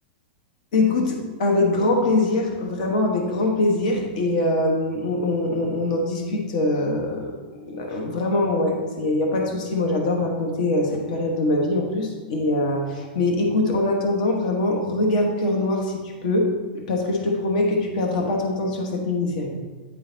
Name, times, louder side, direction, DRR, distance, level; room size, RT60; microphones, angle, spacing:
voice 1, 0.7-15.9 16.2-16.5 16.7-19.5, left 2 dB, 55° left, 1 dB, 1.2 m, -23 dB
9.4 x 3.9 x 3.9 m, 1.3 s
supercardioid pair, 165°, 5 cm